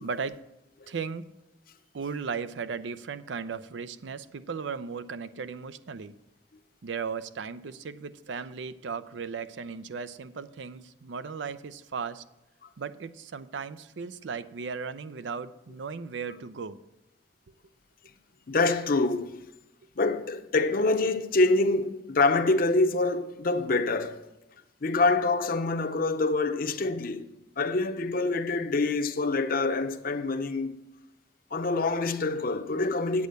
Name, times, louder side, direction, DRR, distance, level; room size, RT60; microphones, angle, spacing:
voice 1, 0.0-0.4 0.9-1.3 1.9-6.2 6.8-12.2 12.8-16.8, right 5 dB, 90° right, 0.5 m, -36 dB
voice 2, 18.5-19.4 20.0-24.2 24.8-27.2 27.6-30.8 31.5-33.3, left 3 dB, 50° left, 0.7 m, -26 dB
8.4 x 8.2 x 6.5 m
head